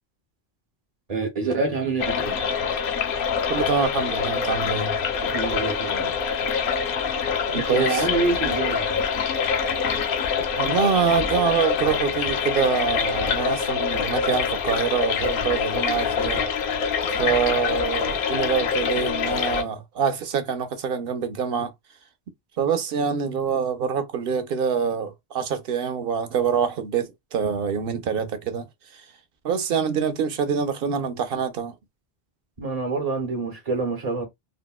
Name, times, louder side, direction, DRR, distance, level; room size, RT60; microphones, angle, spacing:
voice 1, 1.1-2.4 5.2-6.1 7.5-9.1 32.6-34.2, right 3 dB, 40° right, 0.9 m, -27 dB
sound 1, 2.0-19.6, left 6 dB, 65° left, 0.7 m, -25 dB
voice 2, 3.5-5.0 7.5-8.1 10.6-16.4 17.2-21.7 22.6-28.7 28.9-29.0 29.4-31.7, right 6 dB, 65° right, 0.8 m, -25 dB
3.5 x 2.1 x 2.3 m
omnidirectional pair, 1.0 m